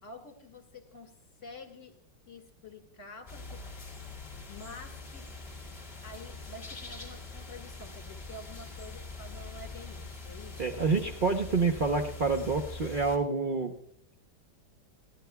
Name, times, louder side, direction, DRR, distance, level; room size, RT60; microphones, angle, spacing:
voice 1, 0.0-1.1 1.4-2.0 2.3-3.6 4.5-5.3 6.0-10.7, left 2 dB, 45° left, 4 dB, 2.3 m, -48 dB
sound 1, 3.3-13.2, left 3 dB, 25° left, 1.5 m, -44 dB
voice 2, 10.6-13.7, right 4 dB, 45° right, 5 dB, 0.7 m, -28 dB
29.5 x 11.5 x 2.3 m, 0.65 s
omnidirectional pair, 1.9 m